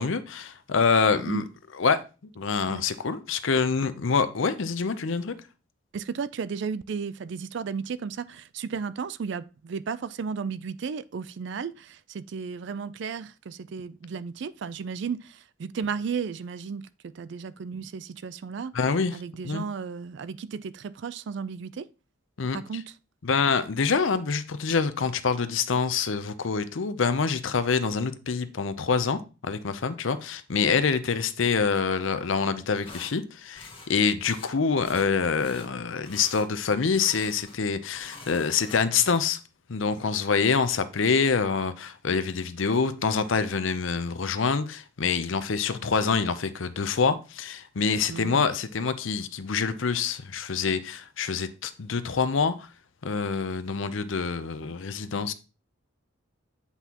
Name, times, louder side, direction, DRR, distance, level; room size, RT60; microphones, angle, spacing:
voice 1, 0.0-1.4 1.8-2.0 2.4-5.3 18.7-19.2 19.4-19.7 22.4-22.6 23.2-39.4 39.7-52.7 53.0-55.3, left 5 dB, 70° left, 0.6 m, -26 dB
voice 2, 5.9-18.7 19.1-21.9 22.5-22.9 48.1-48.5, right 6 dB, 60° right, 0.4 m, -34 dB
sound 1, 32.8-33.1 33.6-33.9 34.2-34.5 34.8-35.1 35.4-35.7 36.0-36.5 36.9-37.6 37.9-39.0, left 3 dB, 25° left, 1.7 m, -45 dB
8.2 x 5.5 x 2.9 m
head